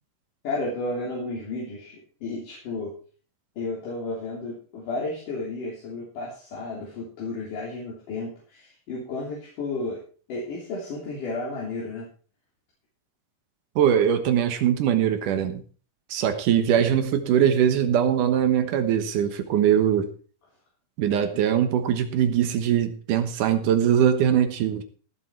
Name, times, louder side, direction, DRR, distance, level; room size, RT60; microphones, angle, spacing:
voice 1, 0.4-2.9 3.6-10.0 10.3-12.1, left 2 dB, 75° left, -4 dB, 4.9 m, -32 dB
voice 2, 13.8-15.6 16.1-20.1 21.0-24.8, right 9 dB, 75° right, 8 dB, 2.7 m, -22 dB
16.5 x 7.9 x 4.6 m, 0.40 s
omnidirectional pair, 3.8 m